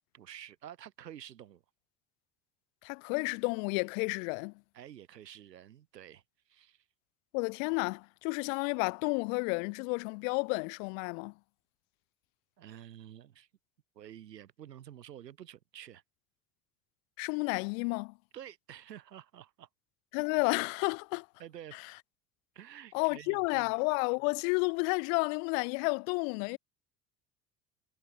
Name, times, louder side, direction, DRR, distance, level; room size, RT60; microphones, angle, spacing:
voice 1, 0.1-1.6 4.7-6.8 12.6-13.5 14.0-16.0 18.3-19.7 21.4-21.8 22.6-23.7, right 11 dB, 80° right, 3.7 m, -50 dB
voice 2, 2.8-4.5 7.3-11.3 17.2-18.1 20.1-21.3 21.7-21.8 22.9-26.6, left 37 dB, 55° left, 0.7 m, -31 dB
figure-of-eight pair, 65°, 49 cm